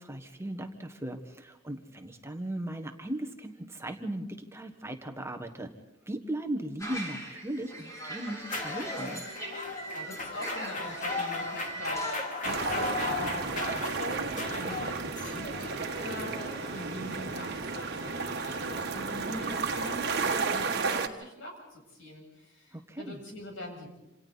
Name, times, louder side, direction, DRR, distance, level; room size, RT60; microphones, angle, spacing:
voice 1, 0.0-5.7 6.1-9.2 22.7-23.2, right 1 dB, 15° right, 6 dB, 1.4 m, -37 dB
sound 1, 6.8-12.2, right 1 dB, 15° left, 7.0 m, -41 dB
sound 2, 8.4-20.4, left 2 dB, 40° left, 2.6 m, -38 dB
voice 2, 9.9-24.0, left 1 dB, 75° left, 0 dB, 7.4 m, -42 dB
sound 3, 12.4-21.1, right 4 dB, 55° right, 1.5 m, -33 dB
28.0 x 27.0 x 4.1 m, 0.97 s
head